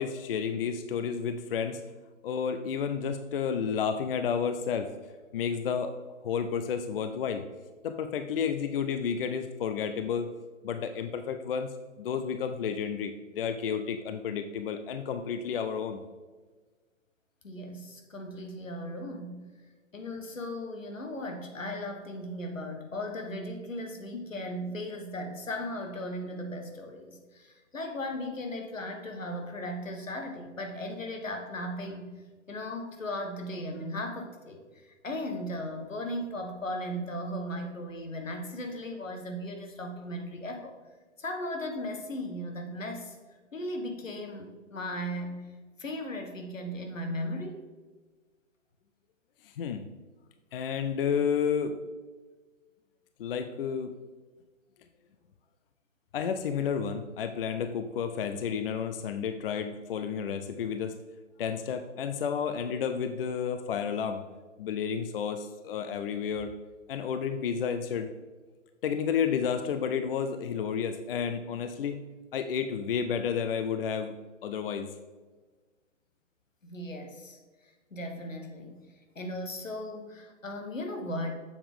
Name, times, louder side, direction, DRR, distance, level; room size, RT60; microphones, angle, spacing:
voice 1, 0.0-1.8 2.2-4.9 5.3-5.9 6.2-7.4 7.8-10.3 10.6-16.0 24.1-24.3 49.6-49.9 50.5-51.7 53.2-53.9 56.1-61.0 61.4-64.2 64.6-66.5 66.9-68.1 68.8-72.0 72.3-74.1 74.4-74.9, left 7 dB, 50° left, 8 dB, 0.5 m, -31 dB
voice 2, 17.4-19.5 19.9-32.1 32.5-40.7 41.2-43.2 43.5-45.5 45.8-47.6 76.6-78.8 79.1-81.3, left 1 dB, 85° left, 4 dB, 1.4 m, -37 dB
7.3 x 6.9 x 3.6 m, 1.3 s
figure-of-eight pair, 125°, 38 cm